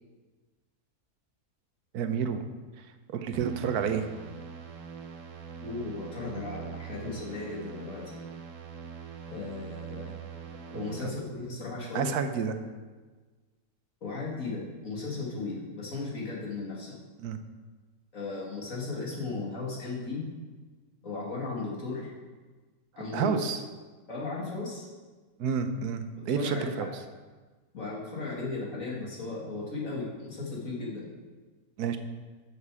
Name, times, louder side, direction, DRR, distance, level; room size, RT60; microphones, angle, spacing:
voice 1, 1.9-2.4 3.1-4.1 10.7-11.1 11.9-12.6 17.2-17.4 23.1-23.6 25.4-26.9 31.8-32.0, right 7 dB, 75° right, 8 dB, 1.3 m, -30 dB
sound 1, 3.3-11.0, right 7 dB, 55° right, 1.2 m, -43 dB
voice 2, 5.6-8.2 9.3-10.2 10.7-12.1 14.0-17.0 18.1-20.2 21.0-22.1 23.0-23.4 24.1-24.9 26.2-26.9 27.7-31.1, left 3 dB, 55° left, -4 dB, 2.5 m, -36 dB
12.5 x 6.6 x 4.8 m, 1.4 s
omnidirectional pair, 1.7 m